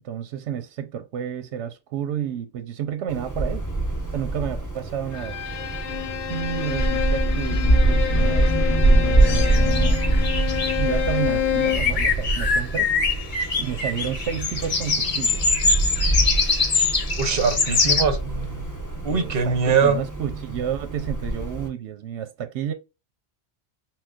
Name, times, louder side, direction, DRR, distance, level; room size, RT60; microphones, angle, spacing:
voice 1, 0.0-3.6 4.1-5.4 6.3-10.0 10.8-12.9 13.6-15.4 19.1-22.7, right 9 dB, 80° right, 0.9 m, -31 dB
Wind, 3.1-21.7, right 2 dB, 15° left, 1.0 m, -24 dB
Bowed string instrument, 5.1-12.0, left 11 dB, 80° left, 0.9 m, -28 dB
sound 1, 9.2-11.3 11.6-18.0, left 4 dB, 45° left, 0.9 m, -24 dB
voice 2, 17.2-18.2 19.0-20.0, right 5 dB, 60° right, 1.0 m, -21 dB
5.9 x 2.2 x 2.3 m
omnidirectional pair, 1.2 m